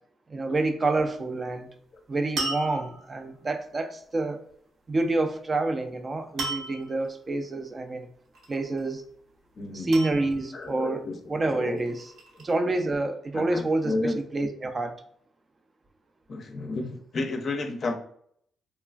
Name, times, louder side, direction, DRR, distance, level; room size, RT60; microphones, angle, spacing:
voice 1, 0.3-1.7 2.1-4.4 4.9-8.1 8.5-9.0 9.7-12.1 12.4-15.0, right 2 dB, 30° right, 0.3 m, -28 dB
sound 1, 2.4-3.3 6.4-7.0 8.3-8.9 9.9-10.7 11.7-12.5, right 3 dB, 75° right, 0.8 m, -35 dB
voice 2, 9.6-10.0 10.5-11.2 11.6-11.8 13.3-14.2 16.3-18.0, left 2 dB, 45° left, 0.5 m, -31 dB
3.0 x 2.3 x 2.3 m
cardioid pair, 90°, 0 cm